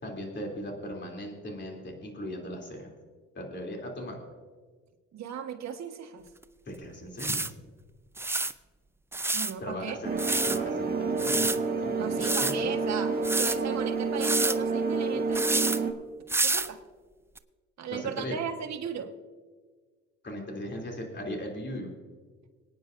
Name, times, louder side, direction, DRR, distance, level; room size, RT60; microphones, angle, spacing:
voice 1, 0.0-2.9 3.3-4.3 6.7-7.4 9.6-10.2 10.4-11.5 11.8-12.1 12.4-12.7 17.9-18.4 20.2-21.9, equal, 35° left, 1 dB, 3.2 m, -38 dB
voice 2, 5.1-6.3 9.3-10.0 12.0-15.8 16.4-16.8 17.8-19.1, right 7 dB, 60° right, 3 dB, 1.5 m, -37 dB
sound 1, 6.4-6.5 7.2-7.5 8.2-8.5 9.1-9.5 10.2-10.6 11.2-11.6 12.2-12.5 13.2-13.6 14.2-14.6 15.3-15.8 16.3-16.7 17.4-17.5, right 2 dB, 10° right, 0.4 m, -28 dB
sound 2, 10.0-15.9, right 4 dB, 30° right, 1.5 m, -29 dB
25.0 x 9.3 x 2.6 m, 1.5 s
cardioid pair, 90°, 30 cm